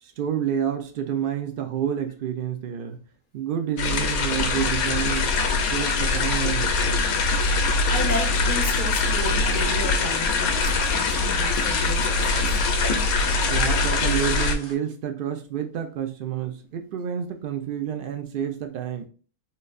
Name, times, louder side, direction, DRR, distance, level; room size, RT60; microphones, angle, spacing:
voice 1, 0.0-3.0 3.3-5.4 5.7-7.1 13.5-19.0, right 9 dB, 80° right, 6 dB, 0.4 m, -29 dB
sound 1, 3.8-14.6, left 3 dB, 85° left, 1.1 m, -23 dB
voice 2, 7.6-12.6, left 2 dB, 55° left, 2 dB, 0.6 m, -33 dB
sound 2, 9.6-14.7, left 1 dB, 15° left, 0.6 m, -38 dB
3.8 x 2.6 x 2.4 m, 0.38 s
omnidirectional pair, 1.5 m